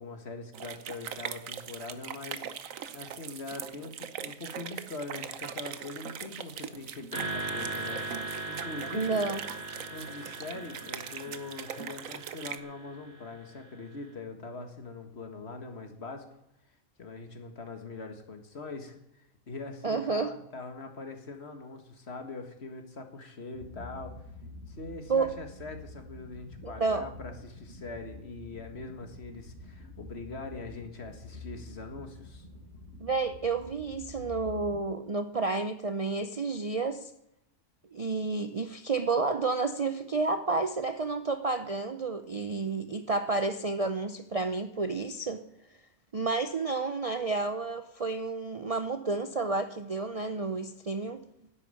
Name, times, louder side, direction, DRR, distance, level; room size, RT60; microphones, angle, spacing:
voice 1, 0.0-8.1 8.5-9.2 9.8-16.3 17.0-24.2 24.7-32.5, left 3 dB, 55° left, 6 dB, 1.9 m, -42 dB
sound 1, 0.5-12.6, right 8 dB, 85° right, 1.2 m, -41 dB
sound 2, 7.1-13.5, right 3 dB, 30° left, 4.3 m, -39 dB
voice 2, 8.9-9.4 19.8-20.3 25.1-25.3 26.6-27.1 33.0-37.1 37.9-45.4 46.1-51.2, right 3 dB, 40° right, 9 dB, 0.5 m, -30 dB
sound 3, 23.5-34.8, left 2 dB, 60° right, 3.6 m, -47 dB
11.0 x 8.6 x 8.9 m, 0.82 s
omnidirectional pair, 1.4 m